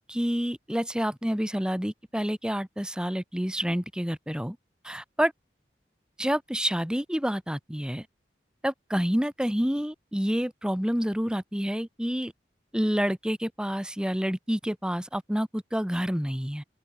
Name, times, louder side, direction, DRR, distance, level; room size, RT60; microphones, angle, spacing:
voice 1, 0.1-4.6 4.8-5.3 6.2-8.1 8.6-12.3 12.7-16.6, equal, 5° right, 1.2 m, -28 dB
open air
head